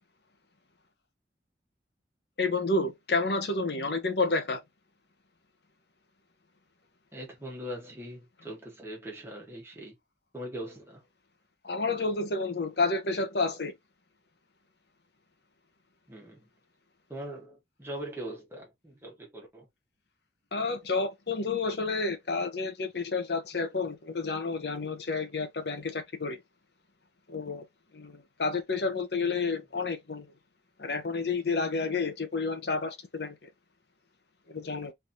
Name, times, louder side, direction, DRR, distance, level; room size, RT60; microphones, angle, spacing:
voice 1, 2.4-4.6 11.6-13.7 20.5-26.4 27.3-27.6 27.9-30.3 30.8-33.4 34.5-34.9, left 3 dB, 70° left, 1.0 m, -30 dB
voice 2, 7.1-9.9 10.3-11.0 16.1-16.5 17.1-19.7, right 1 dB, 15° right, 1.5 m, -41 dB
3.5 x 3.5 x 2.8 m
head